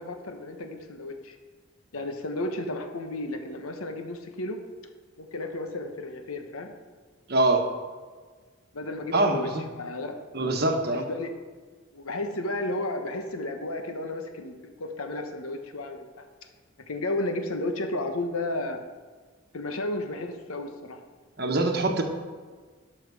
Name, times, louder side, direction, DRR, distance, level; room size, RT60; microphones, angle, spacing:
voice 1, 0.0-1.4 1.9-4.6 5.2-6.7 8.7-9.5 9.7-10.2 10.8-11.3 11.9-16.2 16.9-18.8 19.5-21.0, left 2 dB, 90° left, 6 dB, 1.1 m, -33 dB
voice 2, 7.3-7.6 9.1-9.6 10.3-11.1 21.4-22.0, right 2 dB, 50° right, 4 dB, 1.1 m, -24 dB
12.0 x 5.9 x 4.7 m, 1.5 s
head